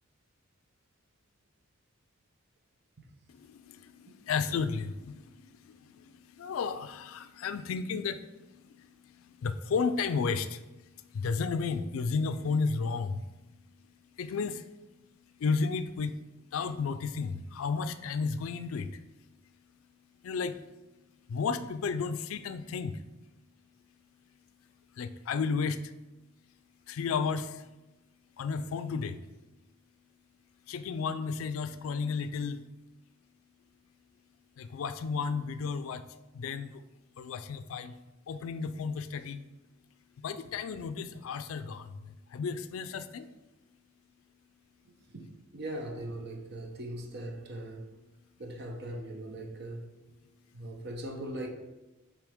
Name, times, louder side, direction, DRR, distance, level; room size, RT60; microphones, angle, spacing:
voice 1, 3.3-19.5 20.2-20.6 21.3-23.0 24.9-25.9 26.9-27.7 28.4-29.2 30.7-32.6 34.6-36.1 36.3-36.8 37.2-38.0 38.3-39.5 40.2-43.3, left 5 dB, 75° left, 0.4 m, -33 dB
voice 2, 45.1-47.8 48.4-49.9 50.5-51.5, right 1 dB, 50° right, 0.8 m, -40 dB
8.2 x 3.4 x 3.5 m
head